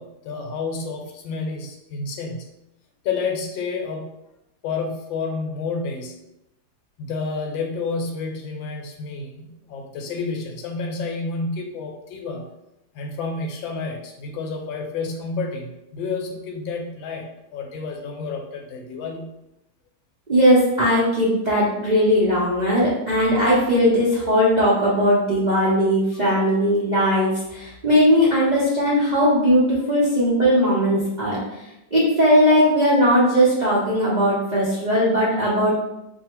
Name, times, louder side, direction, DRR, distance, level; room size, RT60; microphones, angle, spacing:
voice 1, 0.0-2.6 3.0-4.1 4.6-6.2 7.0-12.5 12.9-19.3, left 4 dB, 85° left, 2 dB, 1.4 m, -30 dB
voice 2, 20.3-31.4 31.9-35.7, equal, 85° right, -8 dB, 0.3 m, -18 dB
2.7 x 2.7 x 4.3 m, 0.89 s
omnidirectional pair, 2.1 m